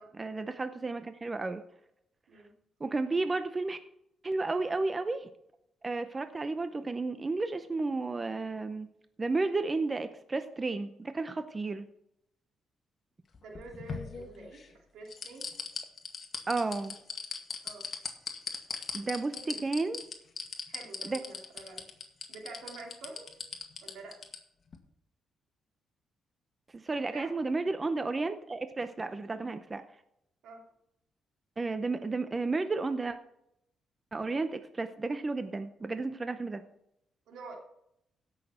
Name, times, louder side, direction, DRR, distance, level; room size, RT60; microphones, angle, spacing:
voice 1, 0.2-1.6 2.8-3.8 4.2-5.3 5.8-8.9 9.2-11.9 16.5-17.0 18.9-20.0 21.0-21.2 26.7-29.8 31.6-33.2 34.1-36.6, right 3 dB, 25° right, 10 dB, 0.7 m, -32 dB
sound 1, 13.3-14.7 15.1-24.4 24.7-24.8, left 5 dB, 45° left, 1.9 m, -38 dB
voice 2, 13.4-15.5 17.6-17.9 19.3-19.6 20.7-21.9 22.3-23.3 23.8-24.2 27.1-27.3 30.4-30.6 37.3-37.6, right 3 dB, 80° right, 0 dB, 3.0 m, -47 dB
16.5 x 6.5 x 4.3 m, 0.78 s
cardioid pair, 95°, 0 cm